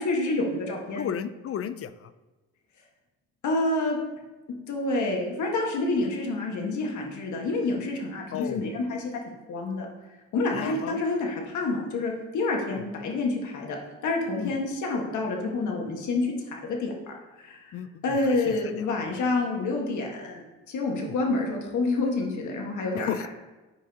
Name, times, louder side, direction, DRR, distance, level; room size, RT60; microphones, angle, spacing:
voice 1, 0.0-1.1 3.4-4.0 4.7-9.9 10.3-13.8 14.0-17.7 18.0-23.1, left 2 dB, 75° left, 0 dB, 1.6 m, -28 dB
voice 2, 0.9-2.1 8.3-8.6 10.5-11.0 12.7-12.8 14.4-14.5 17.7-18.2 18.5-18.9 21.0-21.1 22.9-23.3, left 9 dB, 50° left, 13 dB, 0.5 m, -34 dB
11.0 x 5.0 x 2.9 m, 1.2 s
cardioid pair, 90°, 30 cm